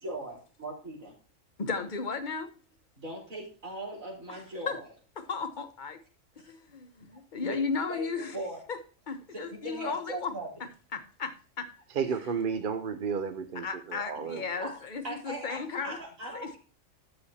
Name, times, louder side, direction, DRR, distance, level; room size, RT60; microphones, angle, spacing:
voice 1, 0.0-1.1 3.0-4.8 6.4-6.5 7.4-7.6 7.9-8.6 9.3-10.5 14.6-14.7 15.0-16.6, right 2 dB, 90° right, -2 dB, 4.3 m, -39 dB
voice 2, 1.6-2.5 4.3-4.8 5.2-6.0 6.4-8.4 8.7-8.8 9.1-10.3 10.9-11.7 13.5-16.0 16.3-16.5, left 5 dB, 40° left, 9 dB, 1.1 m, -35 dB
voice 3, 12.0-14.7, right 6 dB, 50° right, 8 dB, 0.8 m, -32 dB
13.0 x 7.0 x 2.8 m, 0.37 s
omnidirectional pair, 1.4 m